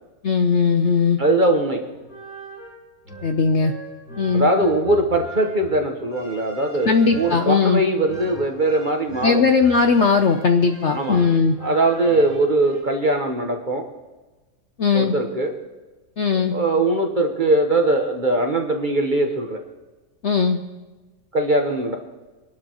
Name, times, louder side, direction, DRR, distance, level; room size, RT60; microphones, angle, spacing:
voice 1, 0.2-1.2 3.2-3.7 4.2-4.5 6.9-7.8 9.2-11.6 14.8-15.1 16.2-16.5 20.2-20.6, left 5 dB, 55° left, 5 dB, 0.8 m, -18 dB
voice 2, 1.2-1.8 4.3-9.4 10.9-11.2 11.6-13.9 14.9-15.5 16.3-19.6 21.3-22.0, right 1 dB, 35° right, 3 dB, 1.1 m, -21 dB
sound 1, 1.9-12.8, right 2 dB, 75° left, 5.5 m, -39 dB
23.5 x 12.0 x 3.0 m, 1.2 s
omnidirectional pair, 1.8 m